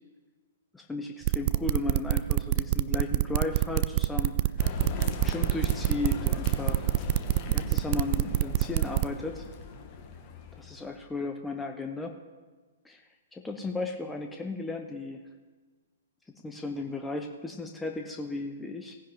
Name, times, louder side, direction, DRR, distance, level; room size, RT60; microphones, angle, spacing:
voice 1, 0.7-4.3 5.2-6.9 7.5-9.5 10.6-12.2 12.8-15.2 16.4-18.9, left 3 dB, 5° left, 3 dB, 0.7 m, -35 dB
sound 1, 1.2-9.0, right 17 dB, 40° right, 0.4 m, -25 dB
sound 2, 4.6-11.1, left 5 dB, 30° left, 1.5 m, -39 dB
17.5 x 10.0 x 3.1 m, 1.3 s
figure-of-eight pair, 115°, 0 cm